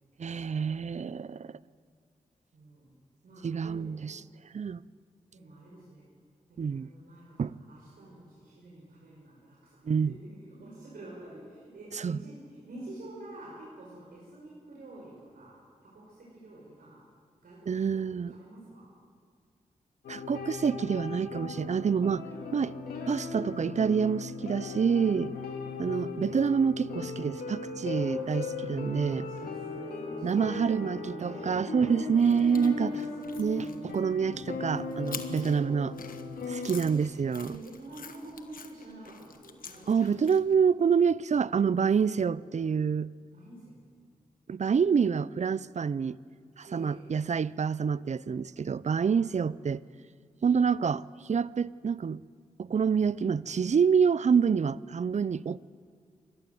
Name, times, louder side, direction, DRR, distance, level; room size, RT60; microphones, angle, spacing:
voice 1, 0.2-1.6 3.4-4.2 4.5-4.8 6.6-6.9 7.4-7.6 9.8-10.1 11.9-12.2 17.7-18.3 20.1-22.7 23.1-25.3 25.8-29.3 30.2-32.9 33.4-35.9 36.5-37.5 39.9-43.1 44.5-46.2 46.6-49.8 50.4-52.2 52.6-55.6, right 6 dB, 50° right, 0.6 m, -27 dB
voice 2, 2.5-2.9 3.2-4.0 5.3-6.1 6.5-10.1 10.5-17.0 17.4-18.9 27.8-31.2 31.6-31.9 32.2-33.7 35.2-36.1 37.4-40.1 43.3-43.8 46.7-47.1 49.0-49.3, right 1 dB, 80° right, 5.4 m, -49 dB
sound 1, 20.0-36.8, left 4 dB, 90° left, 2.4 m, -38 dB
sound 2, 32.1-40.6, left 6 dB, 70° left, 1.4 m, -48 dB
28.0 x 12.0 x 7.9 m
cardioid pair, 45°, 15 cm